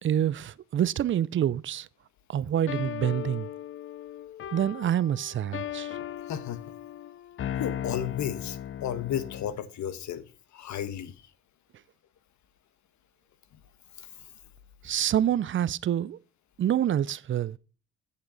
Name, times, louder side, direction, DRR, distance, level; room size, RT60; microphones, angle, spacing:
voice 1, 0.0-1.9 2.3-3.5 4.5-6.0 14.8-16.2 16.6-17.6, right 10 dB, 40° right, 0.5 m, -27 dB
sound 1, 2.7-9.6, left 11 dB, 45° left, 0.5 m, -37 dB
voice 2, 6.3-6.6 7.6-10.2 10.5-11.1 14.0-14.1, left 9 dB, 70° left, 1.2 m, -33 dB
8.6 x 7.3 x 3.9 m
cardioid pair, 90°, 30 cm